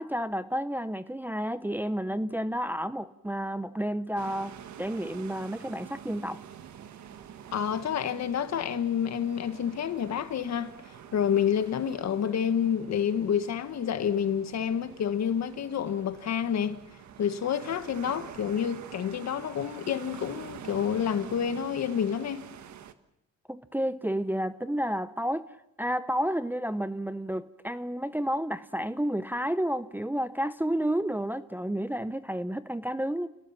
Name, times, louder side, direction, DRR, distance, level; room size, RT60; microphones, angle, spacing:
voice 1, 0.0-6.4 23.5-25.5 25.8-33.3, equal, 5° right, 0.7 m, -31 dB
sound 1, 4.2-22.9, right 9 dB, 70° right, 1.4 m, -47 dB
voice 2, 7.5-16.8 17.2-22.5, left 8 dB, 60° left, 1.6 m, -29 dB
30.0 x 18.5 x 5.9 m
cardioid pair, 90°, 30 cm